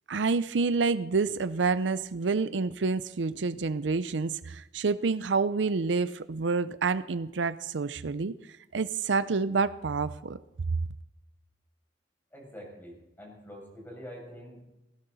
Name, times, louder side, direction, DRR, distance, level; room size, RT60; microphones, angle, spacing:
voice 1, 0.1-8.3 8.7-10.4, right 4 dB, 80° right, 15 dB, 0.6 m, -28 dB
voice 2, 12.3-14.6, equal, 10° left, -2 dB, 6.7 m, -45 dB
20.5 x 16.5 x 4.1 m, 0.98 s
head